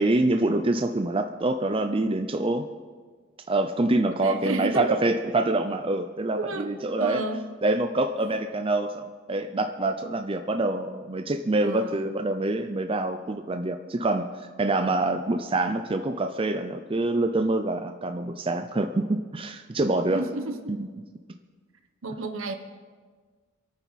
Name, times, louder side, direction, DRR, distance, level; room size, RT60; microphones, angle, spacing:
voice 1, 0.0-2.7 3.5-7.2 7.6-20.2 20.7-20.8, right 2 dB, 25° right, 7 dB, 0.5 m, -26 dB
voice 2, 4.2-5.0 6.3-6.7 7.0-7.4 11.6-12.1 20.1-20.8 22.0-22.5, right 3 dB, 70° right, 6 dB, 1.3 m, -31 dB
27.0 x 9.3 x 4.2 m, 1.5 s
head